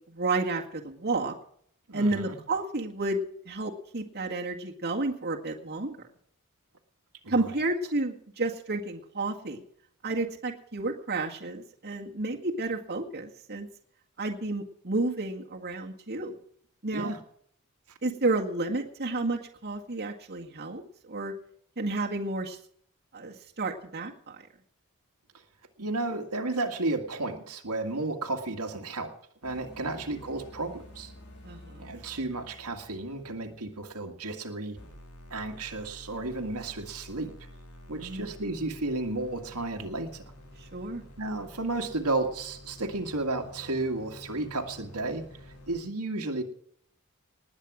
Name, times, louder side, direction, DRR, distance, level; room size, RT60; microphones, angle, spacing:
voice 1, 0.1-1.3 1.9-6.0 7.3-9.6 10.0-13.7 14.2-16.3 16.8-17.1 18.0-21.3 21.8-22.6 23.1-24.4 29.9-30.0 31.4-31.9 38.0-38.3 40.7-41.0, right 2 dB, 50° right, 0 dB, 1.9 m, -31 dB
voice 2, 1.9-2.4 7.2-7.6 16.9-17.2 25.8-29.1 29.4-31.1 31.8-34.8 35.3-37.3 37.9-40.2 41.2-45.3 45.7-46.4, right 2 dB, 90° right, 3 dB, 2.1 m, -33 dB
sound 1, 29.4-34.4 34.8-45.8, left 1 dB, 85° left, 5.0 m, -50 dB
19.5 x 8.9 x 6.3 m, 0.64 s
head